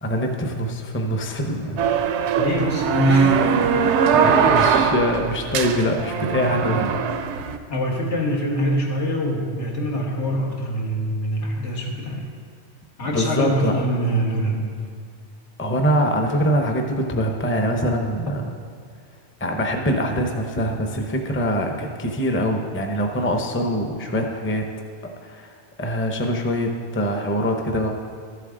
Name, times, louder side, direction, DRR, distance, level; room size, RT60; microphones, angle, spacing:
voice 1, 0.0-1.9 4.1-6.9 13.1-13.8 15.6-18.5 19.4-24.7 25.2-25.5 25.8-27.9, equal, 15° left, 3 dB, 0.6 m, -23 dB
sound 1, 1.8-7.6, right 6 dB, 75° right, 0.9 m, -21 dB
voice 2, 2.3-3.5 4.3-4.5 7.7-12.3 13.0-14.7, equal, 80° left, -2 dB, 1.9 m, -24 dB
13.0 x 7.7 x 3.8 m, 2.1 s
omnidirectional pair, 1.2 m